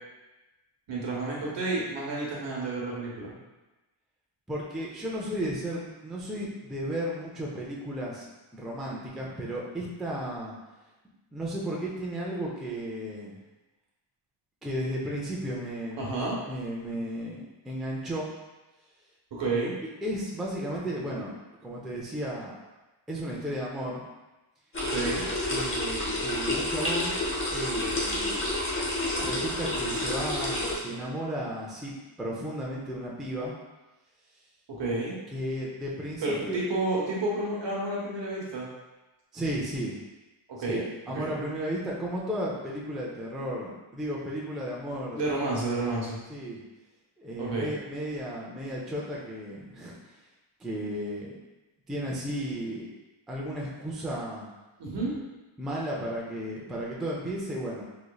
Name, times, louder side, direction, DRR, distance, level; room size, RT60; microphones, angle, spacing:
voice 1, 0.9-3.3 16.0-16.4 19.3-19.7 24.8-25.2 34.7-35.2 36.2-38.7 40.5-40.8 41.1-41.3 45.1-46.2 47.4-47.7 54.8-55.1, right 2 dB, 65° right, -4 dB, 1.0 m, -30 dB
voice 2, 4.5-10.5 11.3-13.4 14.6-16.0 16.5-18.3 20.0-22.5 23.1-24.0 25.5-28.4 29.2-33.5 35.3-36.6 39.3-40.0 40.7-45.2 46.3-46.6 47.2-50.2 50.6-51.4 51.9-52.9 53.3-54.5 55.6-57.8, equal, ahead, -4 dB, 0.3 m, -34 dB
sound 1, 24.7-30.8, left 1 dB, 25° left, 0.7 m, -29 dB
3.8 x 3.1 x 2.2 m, 1.1 s
wide cardioid pair, 160°, 47 cm